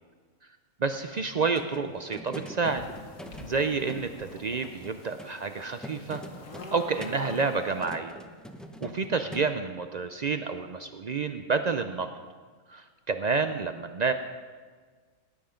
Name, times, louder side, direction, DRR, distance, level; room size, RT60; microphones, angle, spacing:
voice 1, 0.8-2.8 3.4-6.2 6.7-8.2 8.8-12.1 12.7-14.1, right 4 dB, 75° right, 8 dB, 0.4 m, -29 dB
sound 1, 0.9-9.4, equal, ahead, 0.5 m, -44 dB
sound 2, 2.7-7.8, left 3 dB, 65° left, 1.7 m, -46 dB
17.5 x 9.7 x 5.1 m, 1.5 s
omnidirectional pair, 1.5 m